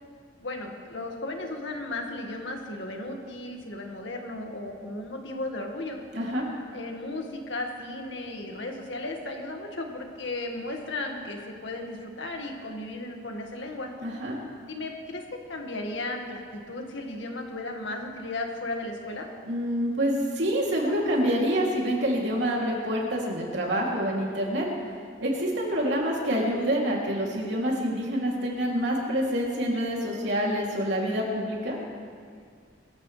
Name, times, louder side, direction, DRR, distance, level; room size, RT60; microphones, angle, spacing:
voice 1, 0.4-6.0 6.7-13.9 14.6-15.2 15.5-19.3, left 2 dB, 80° left, 2 dB, 1.9 m, -35 dB
voice 2, 6.1-6.5 14.0-14.4 19.5-24.7 25.2-31.8, equal, 70° right, -3 dB, 2.9 m, -27 dB
22.5 x 14.0 x 3.3 m, 2.1 s
head